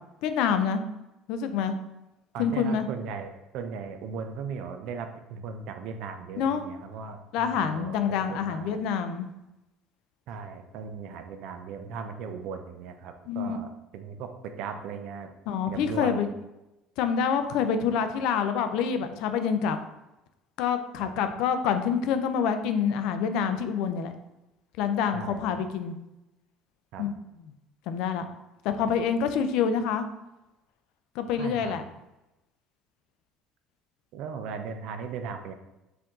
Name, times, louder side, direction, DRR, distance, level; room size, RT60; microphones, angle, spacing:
voice 1, 0.2-0.8 1.3-1.8 2.4-2.9 6.4-6.7 7.3-9.3 13.3-13.6 15.5-16.3 17.0-19.8 20.6-24.1 24.8-26.0 27.0-27.5 27.9-28.3 28.6-30.1 31.2-31.8, left 7 dB, 70° left, 9 dB, 0.4 m, -27 dB
voice 2, 2.3-8.8 10.3-15.3 15.7-16.3 21.0-21.1 25.1-25.6 26.9-27.0 31.4-31.8 34.1-35.5, right 6 dB, 65° right, 7 dB, 0.5 m, -38 dB
4.5 x 2.6 x 3.7 m, 0.94 s
cardioid pair, 150°, 0 cm